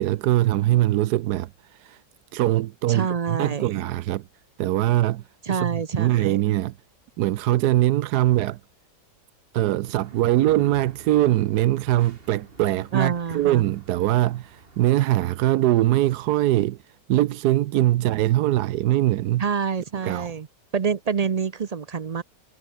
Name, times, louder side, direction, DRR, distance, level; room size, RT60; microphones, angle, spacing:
voice 1, 0.0-2.0 2.3-4.2 4.6-6.7 7.2-8.6 9.5-19.4 20.0-20.3, right 15 dB, 85° right, 1.2 m, -22 dB
voice 2, 2.9-3.8 5.4-6.4 12.9-13.6 19.4-20.5 20.7-22.2, right 6 dB, 60° right, 0.4 m, -27 dB
sound 1, 9.8-14.9, right 3 dB, 35° right, 2.3 m, -45 dB
omnidirectional pair, 1.7 m